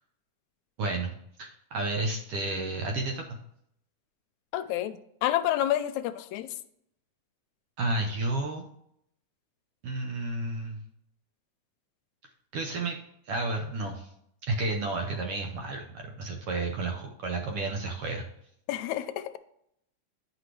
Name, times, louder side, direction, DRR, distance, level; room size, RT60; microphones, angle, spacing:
voice 1, 0.8-3.4 7.8-8.6 9.8-10.8 12.5-13.0 13.2-14.1 14.5-18.2, right 2 dB, 70° right, 3 dB, 1.4 m, -31 dB
voice 2, 4.5-6.5 18.7-19.2, left 12 dB, 80° left, 10 dB, 1.8 m, -29 dB
9.3 x 5.1 x 3.2 m, 0.72 s
omnidirectional pair, 3.6 m